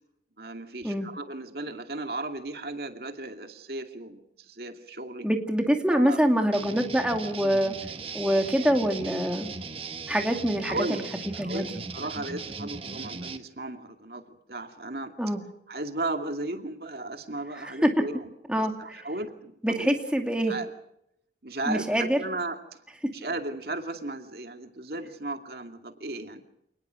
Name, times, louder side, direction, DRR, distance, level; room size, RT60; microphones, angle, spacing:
voice 1, 0.4-5.3 5.9-6.2 10.7-11.0 11.3-11.7 11.9-14.2 14.5-15.1 15.7-18.3 18.8-20.2 20.5-20.7 21.4-22.6 23.1-26.4, right 2 dB, 60° right, 6 dB, 2.4 m, -35 dB
voice 2, 5.2-7.7 8.1-9.5 10.1-11.0 11.4-11.6 15.2-15.4 17.6-17.9 18.5-19.0 19.6-20.6 21.7-22.2, equal, 5° right, 3 dB, 2.6 m, -25 dB
sound 1, 6.5-13.4, right 4 dB, 30° right, 1.5 m, -38 dB
28.0 x 20.0 x 6.4 m, 0.77 s
head